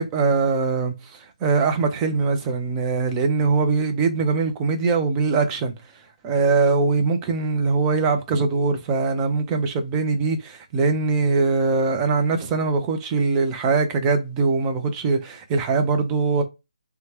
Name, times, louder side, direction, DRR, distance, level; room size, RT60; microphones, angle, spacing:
voice 1, 0.0-5.7 6.2-16.4, right 4 dB, 15° right, 0.5 m, -22 dB
2.8 x 2.2 x 3.0 m
figure-of-eight pair, 150°, 4 cm